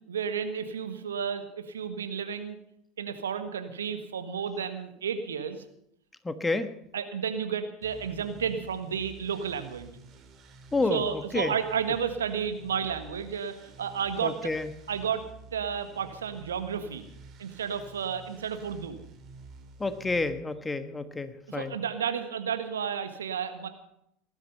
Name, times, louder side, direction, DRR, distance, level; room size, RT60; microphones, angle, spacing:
voice 1, 0.1-2.6 3.0-5.6 6.9-9.9 10.9-14.5 14.9-15.2 15.5-17.0 17.4-19.0 21.5-23.7, right 7 dB, 75° right, 8 dB, 1.5 m, -32 dB
voice 2, 6.2-6.7 10.7-11.5 14.2-14.7 19.8-21.8, left 3 dB, 15° left, 10 dB, 1.4 m, -29 dB
sound 1, 7.8-20.3, right 3 dB, 40° right, 2.4 m, -51 dB
19.0 x 12.0 x 5.6 m, 0.75 s
figure-of-eight pair, 75°, 0 cm